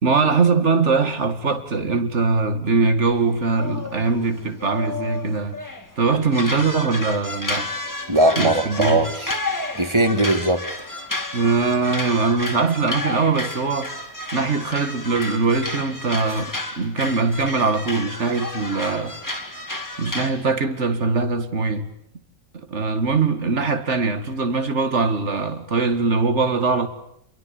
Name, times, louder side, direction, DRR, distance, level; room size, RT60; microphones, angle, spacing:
voice 1, 0.0-5.6 6.0-7.7 8.4-9.0 11.3-13.9 14.3-19.2 20.0-21.9 22.5-26.9, right 4 dB, 45° right, 2.3 m, -22 dB
sound 1, 3.3-5.9 6.3-20.3, left 2 dB, 10° left, 2.6 m, -31 dB
voice 2, 8.1-9.4 9.8-10.6, right 1 dB, 20° right, 2.0 m, -19 dB
28.0 x 23.0 x 8.8 m
omnidirectional pair, 1.7 m